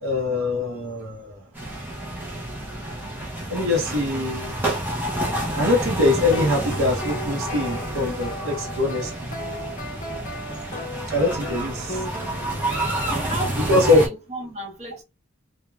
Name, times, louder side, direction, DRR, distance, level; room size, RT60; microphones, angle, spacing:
voice 1, 0.0-1.4 3.5-4.5 5.6-9.1 11.1-12.0 13.7-14.0, left 2 dB, 70° right, 0.7 m, -22 dB
sound 1, 1.5-14.1, right 1 dB, 10° right, 0.6 m, -29 dB
sound 2, 6.1-12.8, left 1 dB, 35° left, 0.5 m, -35 dB
voice 2, 13.0-15.0, right 1 dB, 30° right, 0.9 m, -34 dB
3.1 x 2.1 x 2.2 m
head